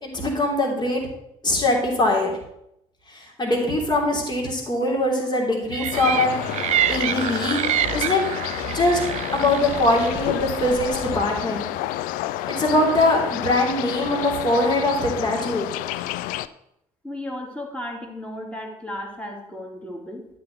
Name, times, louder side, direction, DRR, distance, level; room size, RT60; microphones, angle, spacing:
voice 1, 0.0-1.0 1.4-2.3 3.1-6.4 6.9-7.6 7.9-8.2 8.7-9.0 9.3-11.7 12.5-15.7, left 1 dB, 25° left, -1 dB, 3.0 m, -22 dB
sound 1, 5.7-11.1, right 11 dB, 45° right, 0.4 m, -27 dB
sound 2, 5.9-16.5, left 14 dB, 55° left, 0.4 m, -30 dB
voice 2, 17.0-20.3, left 1 dB, 5° left, 0 dB, 2.7 m, -34 dB
11.5 x 4.5 x 6.7 m, 0.79 s
figure-of-eight pair, 45°, 17 cm